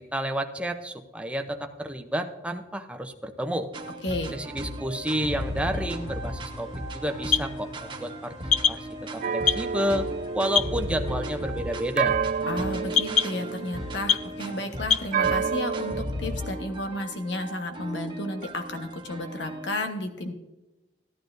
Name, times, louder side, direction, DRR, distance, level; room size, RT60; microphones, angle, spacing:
voice 1, 0.0-3.7 4.3-8.3 8.7-8.9 9.1-10.1 10.3-12.2, equal, 5° right, 5 dB, 0.7 m, -30 dB
sound 1, 3.7-19.7, equal, 25° right, 1.1 m, -36 dB
voice 2, 4.0-4.4 12.5-20.3, left 1 dB, 80° left, 6 dB, 1.3 m, -32 dB
sound 2, 5.1-15.1, left 7 dB, 40° left, 0.4 m, -30 dB
sound 3, 9.2-14.4 15.1-16.1, right 6 dB, 45° right, 0.3 m, -30 dB
15.5 x 11.5 x 2.6 m, 1.1 s
head